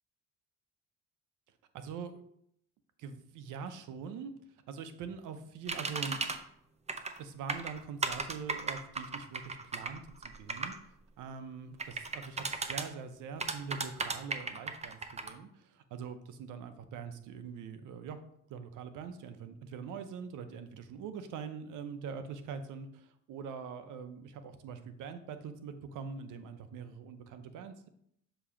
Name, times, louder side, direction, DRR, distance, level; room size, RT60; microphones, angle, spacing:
voice 1, 1.7-2.2 3.0-4.3 4.7-6.4 7.2-18.2 18.5-27.9, right 6 dB, 85° right, 9 dB, 0.7 m, -43 dB
sound 1, 5.7-6.4 6.9-7.2 7.5-10.8 11.8-12.9 13.4-15.3, right 4 dB, 20° right, 0.6 m, -35 dB
7.1 x 3.0 x 4.9 m, 0.70 s
cardioid pair, 90°, 30 cm